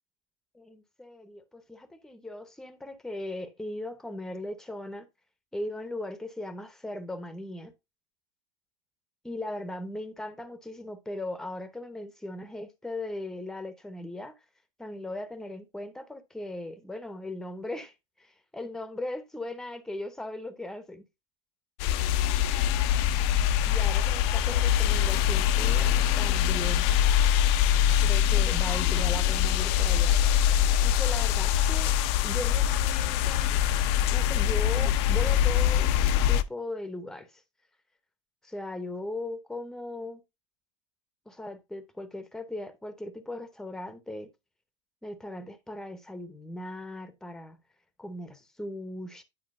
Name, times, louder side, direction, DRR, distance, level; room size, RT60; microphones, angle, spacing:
voice 1, 0.5-5.1 5.5-7.7 9.2-14.4 14.8-21.0 23.6-26.9 28.0-30.2 30.8-32.0 32.2-33.6 34.1-35.9 36.3-37.4 38.4-40.2 41.3-44.3 45.0-47.6 48.0-49.2, left 1 dB, 5° left, 0.7 m, -38 dB
sound 1, 21.8-36.4, left 10 dB, 55° left, 0.5 m, -24 dB
9.6 x 4.5 x 2.5 m
hypercardioid pair, 115°, 16 cm